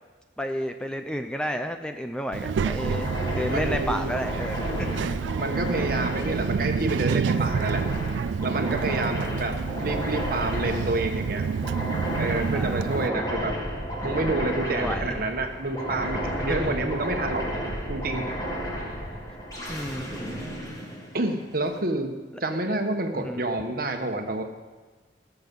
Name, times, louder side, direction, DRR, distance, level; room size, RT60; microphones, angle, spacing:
voice 1, 0.4-5.2 8.9-9.1 12.5-13.3 14.7-15.2 16.4-16.7 19.7-20.4 23.1-23.4, equal, 5° left, 6 dB, 0.5 m, -32 dB
Child speech kid speaking, 2.3-13.1, right 6 dB, 90° right, 0.3 m, -29 dB
sound 1, 2.8-21.6, equal, 20° left, 2.1 m, -33 dB
voice 2, 3.5-4.1 5.4-7.8 8.4-11.4 12.2-13.5 14.0-17.4 17.9-18.3 21.1-22.1 22.4-24.4, right 2 dB, 55° right, 5 dB, 1.3 m, -28 dB
19.5 x 7.0 x 5.4 m, 1.3 s
head